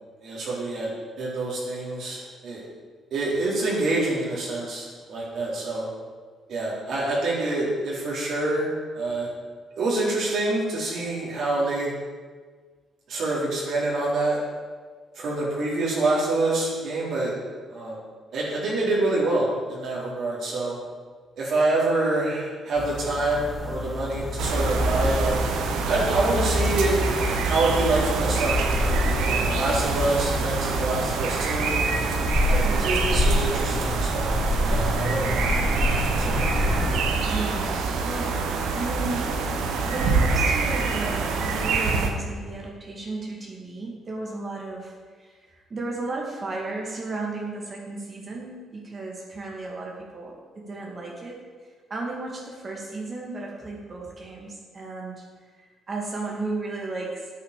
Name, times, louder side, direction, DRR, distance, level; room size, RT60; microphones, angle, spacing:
voice 1, 0.2-0.9 1.2-2.6 3.1-5.9 6.5-9.3 9.8-11.9 13.1-14.4 15.1-17.3 17.7-18.0 18.3-20.8 21.4-25.4 25.8-31.7 32.4-34.3 34.7-36.4, right 2 dB, 65° right, -6 dB, 3.7 m, -26 dB
sound 1, 22.8-37.0, left 1 dB, 5° left, 2.8 m, -28 dB
sound 2, 24.4-42.1, right 4 dB, 90° right, 1.4 m, -25 dB
voice 2, 37.3-39.3 39.8-51.4 51.9-57.3, right 2 dB, 40° right, -2 dB, 2.6 m, -34 dB
9.4 x 8.7 x 6.8 m, 1.5 s
cardioid pair, 90°, 0 cm